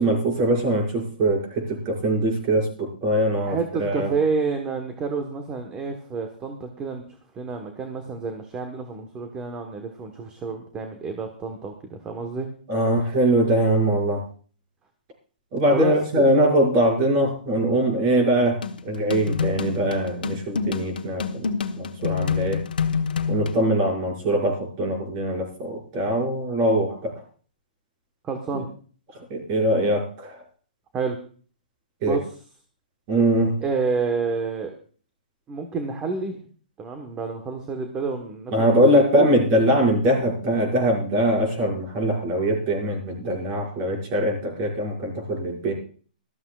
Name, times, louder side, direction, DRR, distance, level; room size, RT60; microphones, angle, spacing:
voice 1, 0.0-4.1 12.7-14.2 15.5-21.5 21.7-22.6 23.3-27.2 28.5-28.6 29.3-30.4 32.0-32.2 33.1-33.5 38.5-45.7, right 1 dB, 35° right, 0 dB, 6.0 m, -22 dB
voice 2, 3.4-7.0 7.3-12.5 15.7-16.3 28.2-28.7 30.9-31.2 32.0-32.3 33.6-34.7 35.5-36.4 36.8-39.3, right 4 dB, 15° right, 5 dB, 1.3 m, -29 dB
sound 1, 18.6-23.6, left 6 dB, 85° left, 1.3 m, -27 dB
19.5 x 13.5 x 2.4 m, 0.42 s
hypercardioid pair, 155°, 5 cm